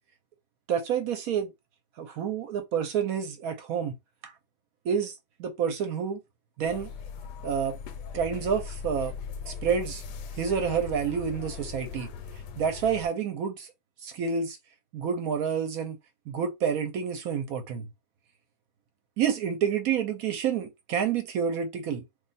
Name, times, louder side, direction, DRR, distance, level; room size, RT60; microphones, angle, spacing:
voice 1, 0.7-1.5 2.0-3.9 4.2-4.3 4.8-5.1 5.4-6.2 6.6-6.9 7.4-7.8 8.1-9.1 9.5-10.0 10.4-12.1 12.6-13.7 14.0-14.6 14.9-16.0 16.3-17.9 19.2-22.0, right 7 dB, 70° right, 1.0 m, -28 dB
sound 1, 6.6-13.1, left 6 dB, 85° left, 1.2 m, -39 dB
2.6 x 2.3 x 3.9 m
omnidirectional pair, 1.8 m